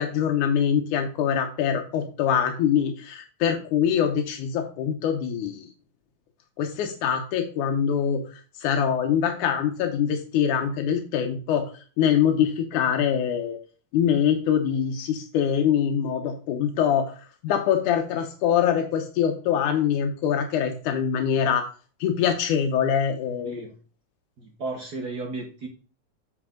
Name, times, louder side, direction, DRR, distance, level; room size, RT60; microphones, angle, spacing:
voice 1, 0.0-5.7 6.6-8.2 8.6-11.7 12.0-13.6 13.9-17.1 17.4-21.7 22.0-23.6, left 8 dB, 85° left, 3 dB, 2.5 m, -24 dB
voice 2, 23.4-23.8 24.4-25.7, right 3 dB, 50° right, 1 dB, 1.2 m, -34 dB
8.2 x 5.3 x 3.7 m, 0.37 s
omnidirectional pair, 3.4 m